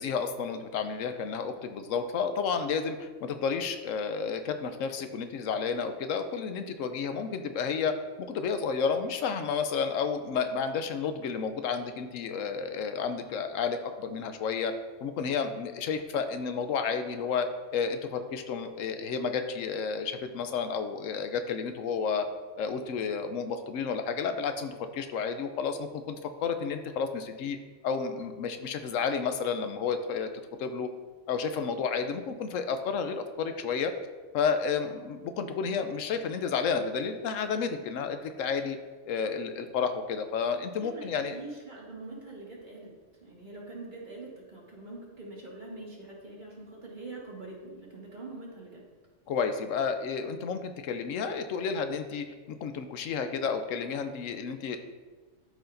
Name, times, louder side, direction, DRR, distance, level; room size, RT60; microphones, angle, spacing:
voice 1, 0.0-14.7 15.0-17.5 17.7-22.3 22.6-27.6 27.8-30.3 30.6-30.9 31.3-33.9 34.3-38.8 39.1-41.4 49.3-54.8, left 6 dB, 85° left, 8 dB, 1.0 m, -31 dB
voice 2, 40.8-42.9 43.2-48.8, right 2 dB, 40° right, -3 dB, 1.8 m, -44 dB
12.5 x 4.8 x 2.6 m, 1.4 s
omnidirectional pair, 1.3 m